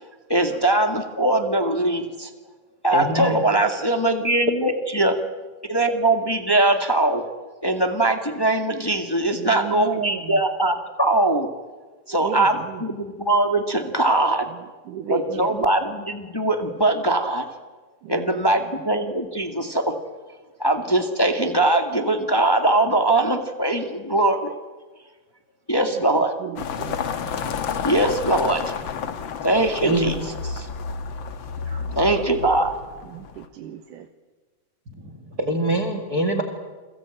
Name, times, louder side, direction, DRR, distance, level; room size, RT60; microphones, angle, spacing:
voice 1, 0.3-2.3 2.8-5.2 5.7-7.2 7.6-11.5 12.1-14.5 15.1-17.5 18.1-20.0 20.6-24.5 25.7-26.3 27.8-28.6 29.4-30.7 31.7-32.7, right 2 dB, 15° left, 5 dB, 0.8 m, -21 dB
voice 2, 2.9-3.4 29.8-30.1 34.9-35.0 35.4-36.4, right 2 dB, 30° right, 6 dB, 2.3 m, -23 dB
voice 3, 9.3-10.4 12.1-12.9 14.9-15.7 18.0-18.6 25.8-25.9 26.4-27.0 31.8-32.0 33.1-34.1, right 10 dB, 75° right, 7 dB, 2.7 m, -33 dB
sound 1, 26.6-33.5, left 6 dB, 50° left, 1.6 m, -31 dB
29.5 x 22.0 x 9.0 m, 1.3 s
omnidirectional pair, 3.7 m